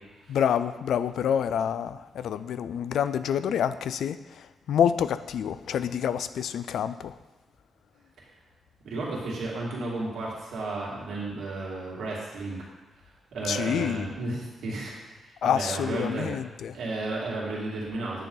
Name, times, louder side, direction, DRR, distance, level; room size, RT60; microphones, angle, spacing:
voice 1, 0.3-7.1 13.4-14.1 15.4-16.8, left 8 dB, 80° left, 14 dB, 0.4 m, -27 dB
voice 2, 8.8-12.6 13.3-14.9 15.4-16.3 16.7-18.3, right 2 dB, 80° right, -4 dB, 2.6 m, -33 dB
9.4 x 6.6 x 4.0 m, 1.2 s
wide cardioid pair, 145°, 0 cm